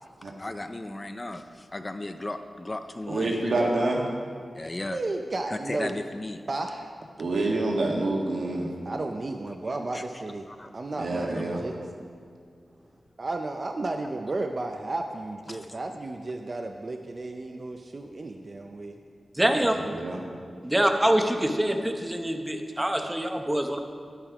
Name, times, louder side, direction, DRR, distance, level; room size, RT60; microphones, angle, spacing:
voice 1, 0.4-3.3 4.6-5.0 5.5-6.4 9.9-10.0 10.5-10.7 15.5-15.8, left 2 dB, 25° left, 7 dB, 0.4 m, -35 dB
voice 2, 3.1-4.0 7.2-8.7 11.0-11.6 19.6-20.2, right 2 dB, 70° right, -1 dB, 1.7 m, -27 dB
voice 3, 4.9-6.0 6.5-6.9 8.8-10.5 10.7-11.8 13.2-19.0 19.4-20.0, right 2 dB, 40° right, 4 dB, 0.5 m, -33 dB
voice 4, 19.4-19.7 20.6-23.8, right 1 dB, 10° right, 5 dB, 0.8 m, -25 dB
11.0 x 8.9 x 4.9 m, 2.2 s
wide cardioid pair, 130°, 0 cm